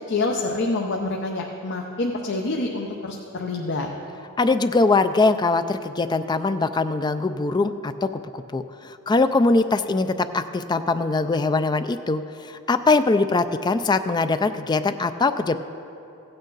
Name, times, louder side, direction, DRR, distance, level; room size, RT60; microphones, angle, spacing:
voice 1, 0.1-3.9, left 2 dB, 55° left, 1 dB, 0.7 m, -27 dB
voice 2, 4.4-15.6, left 3 dB, 20° left, 10 dB, 0.3 m, -22 dB
16.0 x 8.9 x 4.0 m, 3.0 s
head